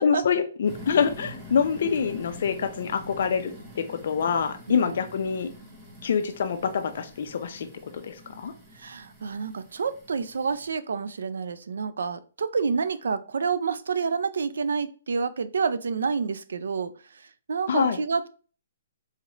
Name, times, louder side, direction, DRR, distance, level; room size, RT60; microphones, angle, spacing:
voice 1, 0.0-5.5 6.0-7.7 8.0-8.5 17.7-18.0, left 6 dB, 45° left, 0.5 m, -26 dB
sound 1, 0.7-10.7, equal, 10° right, 0.6 m, -45 dB
voice 2, 8.8-18.3, right 5 dB, 80° right, 0.4 m, -29 dB
4.1 x 2.4 x 3.0 m
hypercardioid pair, 175°, 0 cm